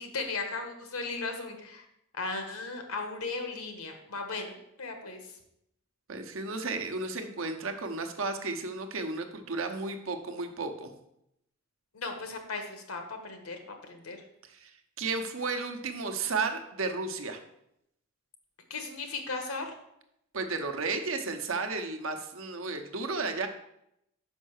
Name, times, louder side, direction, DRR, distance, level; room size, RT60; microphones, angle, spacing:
voice 1, 0.0-1.8 2.1-5.2 11.9-14.2 18.7-19.7, left 3 dB, 85° left, 5 dB, 1.3 m, -36 dB
voice 2, 6.1-10.9 14.5-14.7 15.0-17.4 20.3-23.5, right 3 dB, 65° right, 5 dB, 0.9 m, -33 dB
5.5 x 5.3 x 6.4 m, 0.80 s
head